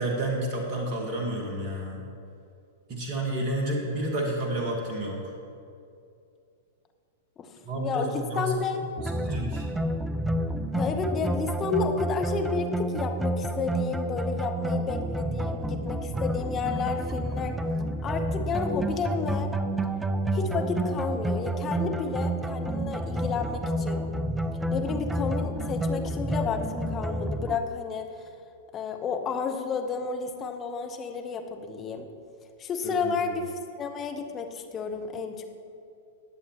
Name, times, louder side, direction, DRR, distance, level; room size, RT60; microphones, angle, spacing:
voice 1, 0.0-2.0 2.9-5.3 7.6-8.6 9.0-9.7 32.8-33.1, right 1 dB, 35° right, 0 dB, 1.6 m, -30 dB
voice 2, 7.8-8.8 10.7-17.6 18.0-19.5 20.3-24.0 24.7-28.3 28.7-32.1 32.6-35.5, left 5 dB, 25° left, 4 dB, 1.0 m, -31 dB
sound 1, 9.0-27.6, right 1 dB, 10° right, 0.5 m, -29 dB
19.5 x 7.1 x 3.0 m, 2.5 s
figure-of-eight pair, 100°, 0 cm